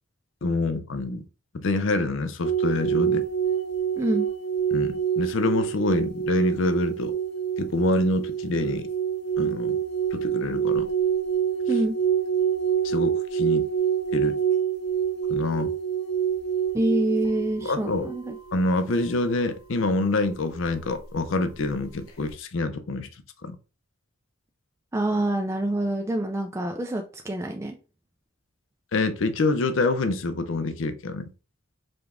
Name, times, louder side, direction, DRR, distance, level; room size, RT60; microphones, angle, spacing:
voice 1, 0.4-1.3 1.5-3.3 4.7-7.1 7.6-8.9 9.4-9.8 10.1-10.9 12.8-13.7 14.1-14.4 15.3-15.7 17.6-18.1 18.5-23.1 23.4-23.6 28.9-31.3, left 2 dB, 60° left, 0.5 m, -26 dB
sound 1, 2.4-18.8 22.1-22.3, right 8 dB, 80° left, 0.9 m, -26 dB
voice 2, 4.0-4.3 11.7-12.0 16.7-18.3 24.9-27.8, right 1 dB, 15° right, 0.3 m, -26 dB
5.0 x 2.4 x 3.4 m
head